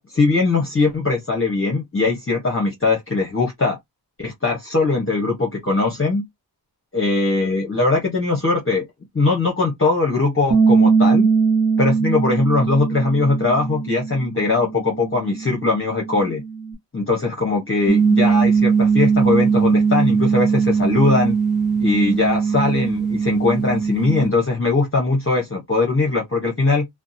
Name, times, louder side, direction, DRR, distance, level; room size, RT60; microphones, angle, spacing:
voice 1, 0.0-3.8 4.2-6.3 6.9-8.8 9.1-11.3 11.8-16.4 16.9-21.4 21.8-26.9, left 3 dB, 30° left, 0.9 m, -20 dB
Bass guitar, 10.5-16.7, right 5 dB, 30° right, 0.9 m, -21 dB
sound 1, 17.9-24.3, right 6 dB, ahead, 0.4 m, -19 dB
2.6 x 2.2 x 2.5 m
wide cardioid pair, 55°, 43 cm